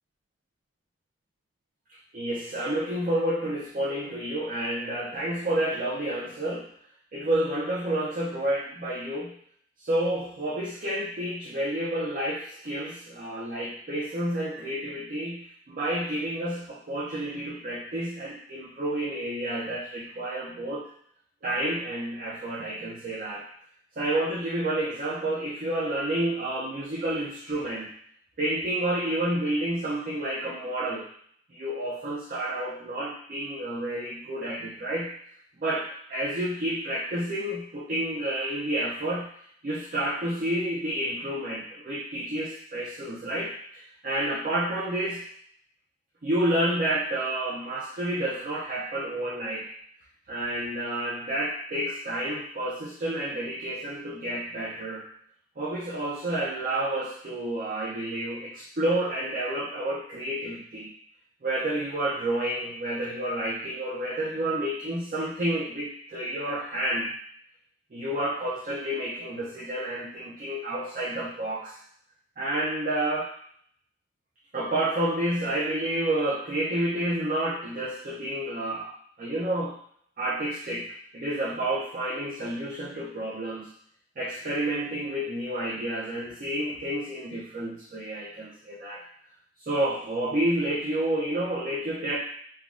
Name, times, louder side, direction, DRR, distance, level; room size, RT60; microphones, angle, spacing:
voice 1, 2.1-6.7 7.1-9.3 9.8-20.9 21.4-23.5 24.0-27.9 28.4-31.1 31.5-35.1 35.6-39.3 39.6-45.2 46.2-49.7 50.3-55.0 55.6-60.9 61.4-67.1 67.9-71.8 72.4-73.3 74.5-78.9 79.2-79.7 80.2-83.7 84.2-89.0 89.6-92.2, right 1 dB, 45° right, -6 dB, 0.4 m, -30 dB
3.3 x 2.2 x 2.4 m, 0.64 s
head